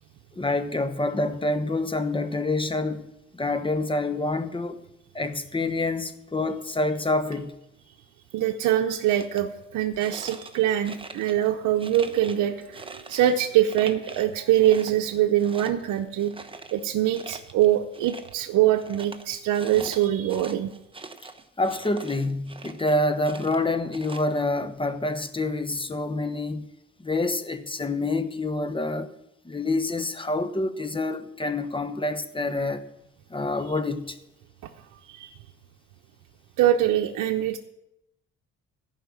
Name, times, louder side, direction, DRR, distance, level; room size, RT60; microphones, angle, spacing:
voice 1, 0.4-3.1 3.3-4.8 5.1-7.5 19.8-19.9 21.6-26.7 27.0-29.1 29.4-32.8 33.3-34.2, left 2 dB, 15° left, 1.1 m, -27 dB
voice 2, 8.3-16.3 16.7-20.7 35.0-35.3 36.6-37.6, right 12 dB, 80° right, 0.8 m, -23 dB
sound 1, 8.9-9.4 10.0-11.5 11.8-13.4 13.7-14.3 14.6-18.5 18.8-23.0 23.2-24.6, right 3 dB, 15° right, 1.0 m, -43 dB
14.5 x 5.7 x 7.3 m
cardioid pair, 90°, 30 cm